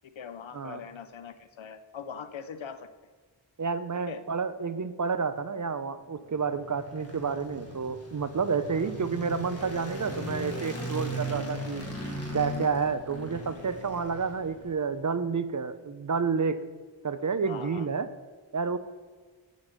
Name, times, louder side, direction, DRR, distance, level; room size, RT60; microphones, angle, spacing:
voice 1, 0.2-2.9 4.1-4.2 8.7-8.9 11.3-11.5 17.5-17.9, left 7 dB, 85° left, 10 dB, 0.6 m, -42 dB
voice 2, 3.6-11.9 12.3-16.6 17.0-18.1 18.5-18.8, right 5 dB, 40° right, 12 dB, 0.5 m, -30 dB
sound 1, 6.3-14.7, right 1 dB, 30° left, 1.6 m, -38 dB
7.2 x 3.9 x 6.4 m, 1.4 s
wide cardioid pair, 40°, 45 cm